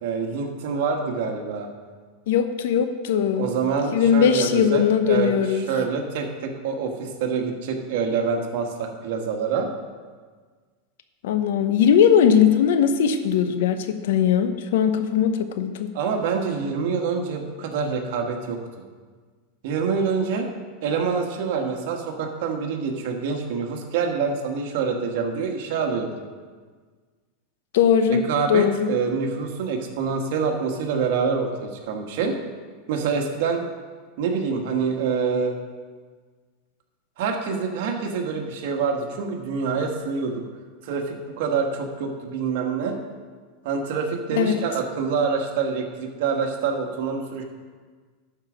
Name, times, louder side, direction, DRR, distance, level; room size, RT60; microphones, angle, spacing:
voice 1, 0.0-1.7 3.4-9.7 15.9-18.6 19.6-20.5 20.8-26.2 28.1-32.4 32.9-33.6 34.2-35.6 37.2-40.4 40.8-43.0 43.6-47.4, right 5 dB, 70° right, 3 dB, 1.5 m, -26 dB
voice 2, 2.3-3.5 3.9-5.6 11.2-15.9 27.7-28.2 28.5-28.9 44.3-44.6, left 8 dB, 75° left, 9 dB, 0.8 m, -19 dB
12.0 x 4.9 x 6.2 m, 1.5 s
supercardioid pair, 125°, 0 cm